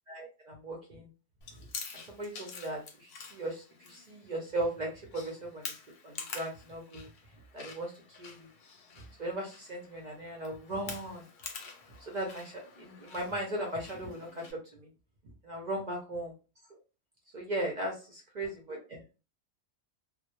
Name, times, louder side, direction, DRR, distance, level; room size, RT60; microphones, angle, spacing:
voice 1, 0.1-1.1 2.1-5.7 6.0-7.1 7.5-7.9 8.2-8.5 9.2-11.2 12.1-14.4 14.7-14.9 15.4-16.3 17.3-19.0, right 1 dB, 55° right, 0 dB, 0.5 m, -37 dB
Chewing mastication, 1.4-14.5, left 5 dB, 65° left, 0.8 m, -47 dB
2.1 x 2.1 x 2.9 m, 0.32 s
omnidirectional pair, 1.3 m